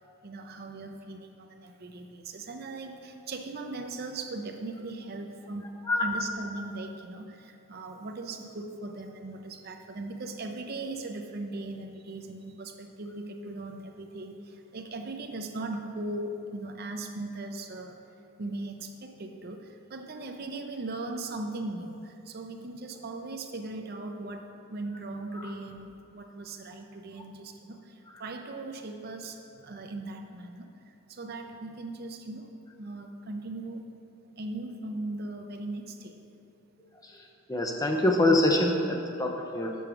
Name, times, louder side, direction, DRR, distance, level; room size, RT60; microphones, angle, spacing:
voice 1, 0.2-5.7 6.0-7.3 7.7-14.3 14.7-18.0 18.4-19.6 19.9-22.0 22.3-24.4 24.7-27.8 28.2-30.7 31.1-32.4 32.8-33.9 34.4-36.1, right 2 dB, 45° right, 4 dB, 0.5 m, -38 dB
voice 2, 5.9-6.2 25.4-25.5 37.0-39.7, left 1 dB, 15° left, 1 dB, 0.6 m, -26 dB
6.9 x 4.8 x 5.9 m, 2.7 s
head